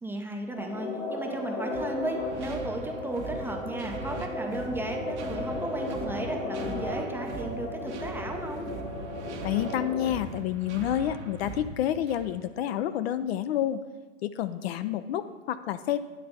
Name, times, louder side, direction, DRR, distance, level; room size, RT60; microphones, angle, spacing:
voice 1, 0.0-8.7, right 2 dB, 5° right, 2 dB, 0.5 m, -35 dB
sound 1, 0.5-10.1, left 2 dB, 90° left, 1.7 m, -35 dB
sound 2, 1.7-12.5, right 3 dB, 60° right, 1.1 m, -41 dB
voice 2, 9.4-13.8 14.2-16.0, left 11 dB, 50° left, 11 dB, 0.4 m, -29 dB
9.7 x 3.3 x 6.6 m, 1.3 s
hypercardioid pair, 105°, 39 cm